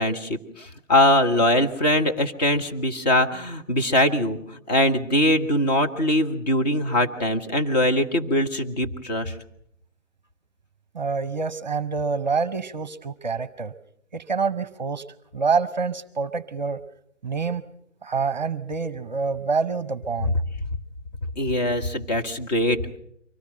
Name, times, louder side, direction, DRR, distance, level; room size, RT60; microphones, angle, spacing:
voice 1, 0.0-9.3 21.4-23.0, left 1 dB, 35° left, 4 dB, 1.6 m, -22 dB
voice 2, 10.9-13.7 14.1-15.0 15.3-16.8 17.2-17.6 18.0-20.3, right 5 dB, 35° right, 16 dB, 0.8 m, -26 dB
24.5 x 18.0 x 6.4 m, 0.73 s
figure-of-eight pair, 150°, 37 cm